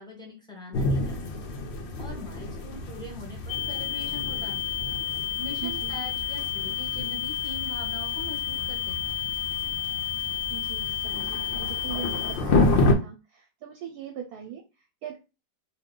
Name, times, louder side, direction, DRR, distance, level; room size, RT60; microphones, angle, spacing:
voice 1, 0.0-1.4 2.0-4.7 5.4-9.1, left 1 dB, 5° left, -1 dB, 0.5 m, -42 dB
sound 1, 0.7-12.9, left 2 dB, 85° left, 0.5 m, -30 dB
sound 2, 3.5-12.4, left 11 dB, 65° left, 0.9 m, -31 dB
voice 2, 5.6-6.0 10.5-15.2, right 9 dB, 75° right, 3 dB, 1.0 m, -41 dB
2.8 x 2.2 x 3.6 m, 0.30 s
omnidirectional pair, 1.8 m